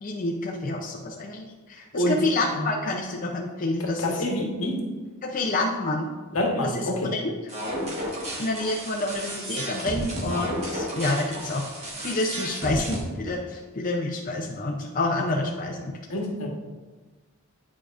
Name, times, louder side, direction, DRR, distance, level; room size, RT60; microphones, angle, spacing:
voice 1, 0.0-4.2 5.2-6.1 6.7-6.9 7.1-7.4 8.4-15.9, left 2 dB, 40° left, 0 dB, 0.5 m, -28 dB
voice 2, 3.8-4.8 6.3-7.1 16.1-16.5, left 1 dB, 80° left, 0 dB, 1.3 m, -26 dB
sound 1, 7.5-13.0, equal, 30° right, 1.2 m, -33 dB
9.3 x 4.8 x 2.5 m, 1.3 s
head